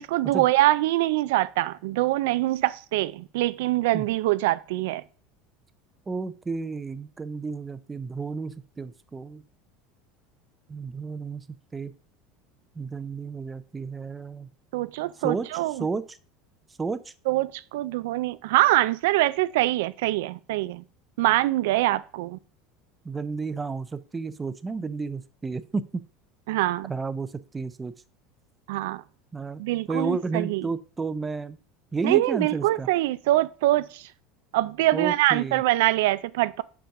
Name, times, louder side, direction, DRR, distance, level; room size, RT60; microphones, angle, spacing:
voice 1, 0.0-5.0 14.7-15.9 17.3-20.8 21.2-22.4 26.5-26.9 28.7-29.0 29.6-30.7 32.0-34.0 34.5-36.6, right 16 dB, 80° right, 0.3 m, -24 dB
voice 2, 6.1-9.4 10.7-11.4 11.7-11.9 12.8-14.5 15.2-15.5 15.8-16.2 16.8-17.1 23.0-26.1 26.9-27.9 29.3-29.6 29.9-31.6 31.9-32.9 34.9-35.6, right 4 dB, 15° right, 0.5 m, -32 dB
5.3 x 5.0 x 5.8 m
supercardioid pair, 135°, 0 cm